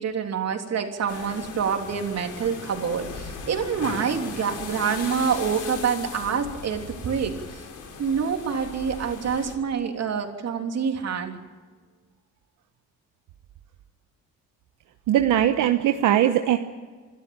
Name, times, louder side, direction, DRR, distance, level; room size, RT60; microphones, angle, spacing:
voice 1, 0.0-7.6 8.0-11.3, right 6 dB, 60° right, 4 dB, 3.3 m, -27 dB
sound 1, 1.1-9.5, left 5 dB, 85° left, 4.3 m, -38 dB
voice 2, 15.1-16.6, right 11 dB, 85° right, 6 dB, 1.1 m, -20 dB
28.0 x 13.0 x 8.8 m, 1.5 s
cardioid pair, 90°, 30 cm